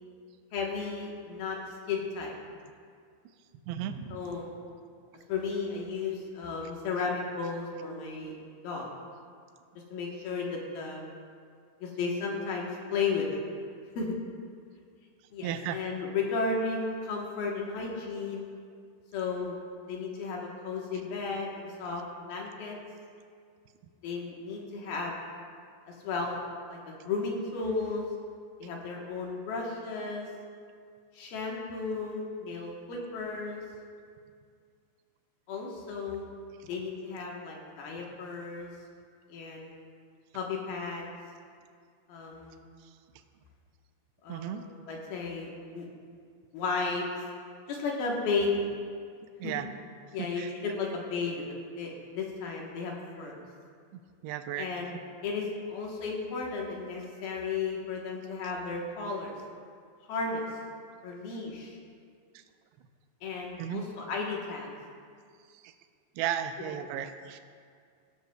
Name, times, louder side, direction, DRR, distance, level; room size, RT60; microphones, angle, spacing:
voice 1, 0.5-1.6 1.9-2.3 4.1-4.5 5.3-8.3 8.6-8.9 9.9-11.1 11.8-13.4 14.0-14.1 15.3-18.5 19.1-19.6 19.9-22.8 24.0-25.2 25.9-26.4 26.7-28.0 28.6-30.3 31.1-33.6 35.5-36.2 36.7-38.7 39.3-39.8 40.3-41.1 42.1-42.6 44.2-45.5 45.7-45.9 46.5-47.0 47.7-48.7 49.4-49.5 50.1-51.5 51.8-53.4 54.6-55.0 55.2-59.4 60.1-60.5 61.0-61.8 63.2-64.7, left 4 dB, 70° left, -1 dB, 2.8 m, -34 dB
voice 2, 3.7-4.2 15.4-15.8 36.6-36.7 44.3-44.7 49.4-49.7 50.2-50.5 54.2-55.0 62.4-62.5 63.6-63.8 65.5-65.7 66.2-67.4, right 10 dB, 80° right, 8 dB, 2.6 m, -35 dB
17.0 x 12.5 x 2.2 m, 2.2 s
omnidirectional pair, 4.9 m